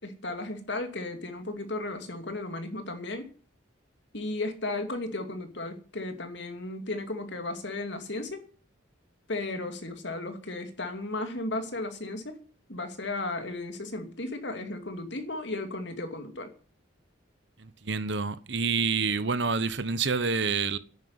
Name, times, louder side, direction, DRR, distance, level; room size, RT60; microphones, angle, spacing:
voice 1, 0.0-3.3 4.1-8.4 9.3-12.4 12.7-16.5, left 2 dB, 60° left, 2.7 m, -35 dB
voice 2, 17.6-20.8, right 5 dB, 60° right, 1.1 m, -28 dB
11.0 x 9.4 x 9.8 m
head